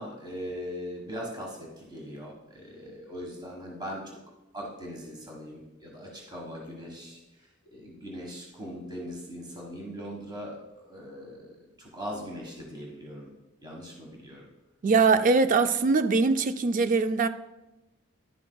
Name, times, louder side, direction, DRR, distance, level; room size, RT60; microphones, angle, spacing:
voice 1, 0.0-4.2 4.5-11.5 11.8-13.3 13.6-14.4, equal, 20° right, 1.5 m, -40 dB
voice 2, 14.8-17.3, right 4 dB, 40° right, 0.3 m, -22 dB
11.0 x 7.1 x 2.3 m
head